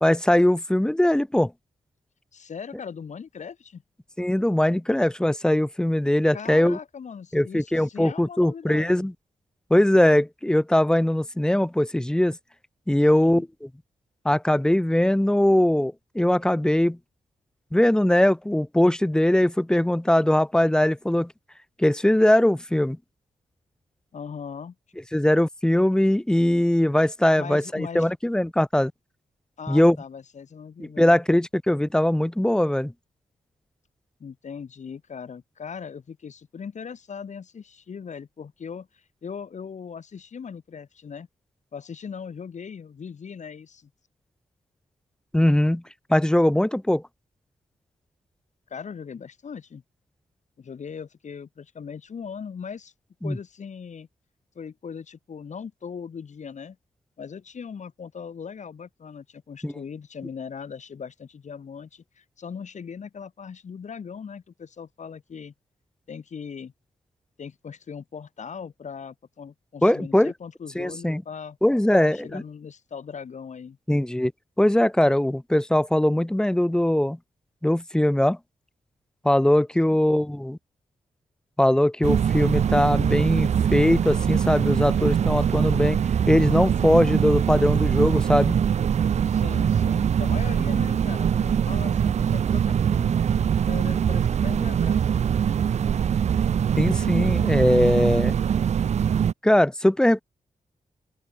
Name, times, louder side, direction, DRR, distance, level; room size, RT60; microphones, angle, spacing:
voice 1, 0.0-1.5 4.2-6.8 7.3-9.1 9.7-12.4 12.9-13.7 14.2-17.0 17.7-21.3 21.8-23.0 25.1-28.9 29.7-30.0 30.8-32.9 45.3-45.8 46.1-47.0 53.2-53.4 59.6-59.7 69.8-70.3 70.8-71.2 71.6-72.4 73.9-74.3 74.6-77.2 77.6-78.4 79.2-80.6 81.6-86.0 86.3-88.6 96.8-98.4 99.4-100.2, left 1 dB, 5° left, 0.5 m, -21 dB
voice 2, 2.3-3.8 6.3-9.1 13.1-13.4 24.1-24.7 27.4-28.1 29.6-31.2 34.2-41.3 41.7-43.9 48.7-49.8 50.6-52.9 53.2-54.1 54.5-56.8 57.2-65.5 66.1-66.7 67.4-71.6 71.9-73.8 79.9-80.0 89.2-93.2 93.7-95.1, left 6 dB, 60° left, 3.3 m, -39 dB
sound 1, 82.0-99.3, right 8 dB, 55° right, 0.4 m, -23 dB
open air
wide cardioid pair, 110°, 14 cm